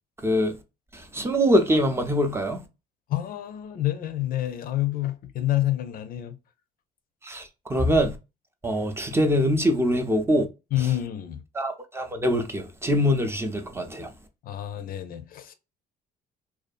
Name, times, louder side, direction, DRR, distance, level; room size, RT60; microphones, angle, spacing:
voice 1, 0.2-0.5 1.1-2.6 7.2-8.2 8.6-10.5 11.5-14.1, equal, 15° right, 0.5 m, -23 dB
voice 2, 3.1-6.4 10.7-11.4 14.5-15.5, left 14 dB, 60° left, 0.5 m, -28 dB
2.6 x 2.3 x 2.4 m
cardioid pair, 110°, 17 cm